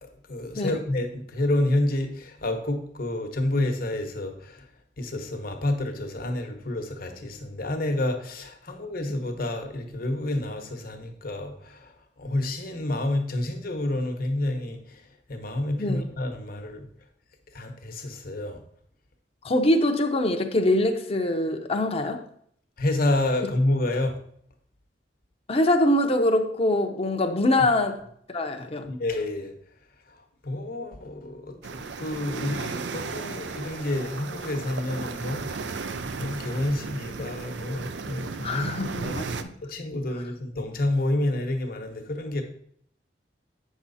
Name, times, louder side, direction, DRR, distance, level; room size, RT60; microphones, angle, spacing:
voice 1, 0.0-4.6 5.0-15.0 15.3-16.9 17.5-18.6 22.8-24.2 28.9-29.5 30.4-35.8 36.0-38.7 39.0-39.2 39.6-42.4, left 1 dB, 55° left, 1.2 m, -29 dB
voice 2, 19.4-22.2 25.5-28.0 28.3-28.9 38.4-39.5, left 1 dB, 35° left, 0.9 m, -24 dB
sound 1, 31.6-39.4, right 4 dB, 75° right, 0.6 m, -35 dB
8.6 x 6.1 x 4.2 m
head